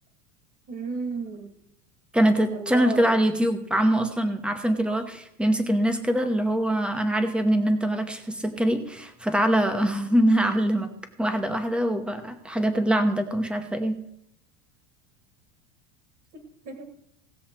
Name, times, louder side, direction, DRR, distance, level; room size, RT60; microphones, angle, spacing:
voice 1, 0.7-1.5 2.6-3.1 16.3-17.0, right 4 dB, 35° right, 5 dB, 1.7 m, -34 dB
voice 2, 2.1-10.9 11.2-14.0, right 1 dB, 5° right, 8 dB, 0.9 m, -23 dB
18.0 x 7.3 x 4.4 m, 0.76 s
supercardioid pair, 165°, 37 cm